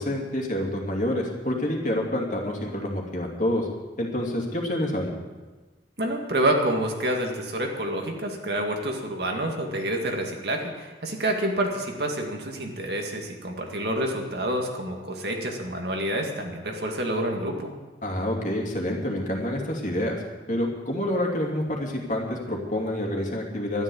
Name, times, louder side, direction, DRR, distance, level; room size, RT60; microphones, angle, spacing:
voice 1, 0.0-3.7 4.0-5.1 18.0-20.2 20.5-23.8, left 1 dB, 45° left, -1 dB, 2.6 m, -27 dB
voice 2, 6.0-17.7, right 1 dB, 60° right, 2 dB, 2.0 m, -28 dB
12.5 x 11.5 x 7.1 m, 1.2 s
head